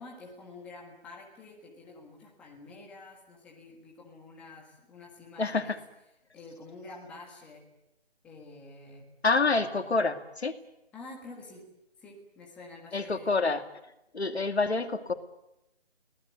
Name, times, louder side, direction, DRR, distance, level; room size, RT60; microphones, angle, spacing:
voice 1, 0.0-5.8 6.3-7.7 8.2-9.1 9.4-10.2 10.9-11.7 12.0-13.3, left 3 dB, 5° left, -2 dB, 1.5 m, -48 dB
voice 2, 5.4-5.8 9.2-10.5 12.9-13.6 14.1-15.1, left 3 dB, 80° left, 8 dB, 2.5 m, -27 dB
24.5 x 18.5 x 9.4 m, 0.90 s
figure-of-eight pair, 170°, 32 cm